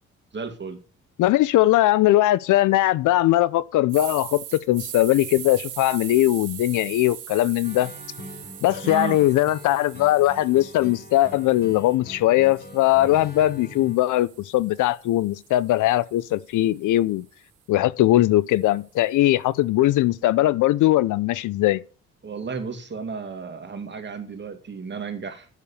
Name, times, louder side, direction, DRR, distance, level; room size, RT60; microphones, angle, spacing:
voice 1, 0.3-0.8 8.8-9.2 22.2-25.5, right 5 dB, 35° right, 2.1 m, -33 dB
voice 2, 1.2-7.9 8.6-17.2 17.7-21.8, left 15 dB, 85° left, 0.6 m, -20 dB
sound 1, 3.9-12.0 12.4-16.6, right 12 dB, 85° right, 1.7 m, -41 dB
sound 2, 7.6-14.0, left 1 dB, 35° left, 4.0 m, -42 dB
8.3 x 6.8 x 6.9 m
cardioid pair, 90°, 30 cm